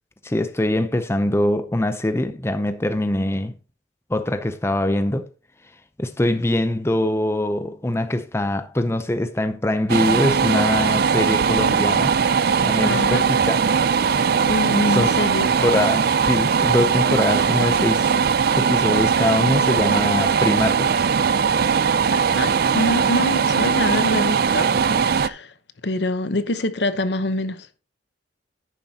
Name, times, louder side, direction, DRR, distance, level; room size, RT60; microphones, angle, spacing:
voice 1, 0.2-3.5 4.1-5.3 6.0-12.2 12.6-13.6 14.9-18.1 18.6-20.9, left 1 dB, 15° left, 0.6 m, -23 dB
sound 1, 9.9-25.3, right 6 dB, 55° right, 0.4 m, -19 dB
voice 2, 12.8-13.2 14.5-15.5 22.1-25.5 25.8-27.7, left 2 dB, 65° left, 0.9 m, -25 dB
Frying (food), 13.2-19.6, equal, 5° right, 3.4 m, -47 dB
10.5 x 9.3 x 2.9 m
head